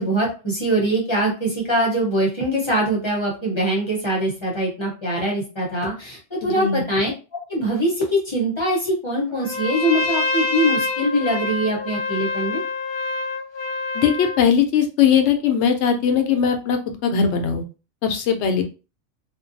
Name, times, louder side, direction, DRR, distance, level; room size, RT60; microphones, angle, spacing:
voice 1, 0.0-7.1 7.5-12.6, right 1 dB, 30° left, -3 dB, 0.8 m, -23 dB
voice 2, 6.4-6.8 13.9-17.6 18.0-18.6, left 7 dB, 75° left, 6 dB, 0.8 m, -19 dB
Trumpet, 9.4-14.4, left 3 dB, 50° left, 0.3 m, -26 dB
2.5 x 2.2 x 2.5 m, 0.32 s
omnidirectional pair, 1.2 m